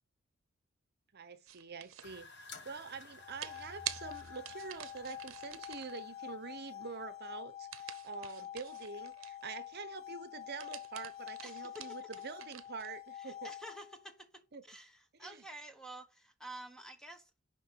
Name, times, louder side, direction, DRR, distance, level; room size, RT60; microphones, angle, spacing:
voice 1, 1.1-2.3 2.6-13.5 14.5-14.6 15.2-15.4, right 5 dB, 55° right, 0.9 m, -46 dB
sound 1, 1.5-2.1 3.4-6.0 7.7-9.5 10.4-13.0, right 12 dB, 80° right, 0.7 m, -47 dB
sound 2, 2.0-7.1, left 3 dB, 60° left, 1.8 m, -55 dB
sound 3, 3.1-14.1, left 11 dB, 35° left, 1.3 m, -48 dB
voice 2, 11.4-12.0 13.2-17.3, right 1 dB, 5° left, 1.3 m, -50 dB
11.0 x 3.8 x 6.2 m
head